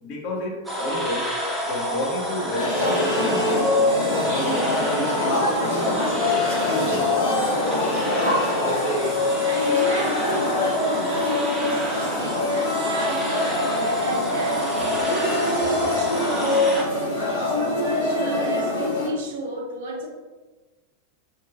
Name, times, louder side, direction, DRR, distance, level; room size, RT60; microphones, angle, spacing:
voice 1, 0.0-1.4 1.6-3.8 4.1-4.8 5.2-6.1 6.7-7.2, left 1 dB, 45° left, -2 dB, 0.6 m, -31 dB
sound 1, 0.6-16.8, equal, 5° right, 0.5 m, -29 dB
sound 2, 2.5-19.1, left 2 dB, 75° left, 1.2 m, -24 dB
voice 2, 8.5-20.1, right 2 dB, 55° right, 0 dB, 0.5 m, -32 dB
2.5 x 2.2 x 2.4 m, 1.3 s
figure-of-eight pair, 90°, 0 cm